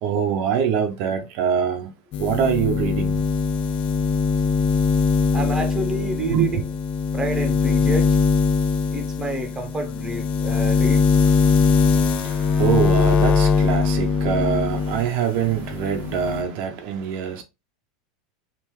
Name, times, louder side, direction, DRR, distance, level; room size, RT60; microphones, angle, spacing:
voice 1, 0.0-1.9 2.2-3.3 6.3-6.6 10.5-10.6 11.2-17.4, right 8 dB, 55° right, 0.6 m, -24 dB
sound 1, 2.1-15.1 15.4-16.4, left 5 dB, 45° left, 0.4 m, -21 dB
voice 2, 5.3-6.6 7.1-8.2 8.9-11.0, right 1 dB, 15° right, 0.8 m, -29 dB
3.6 x 2.5 x 3.0 m
supercardioid pair, 120°, 3 cm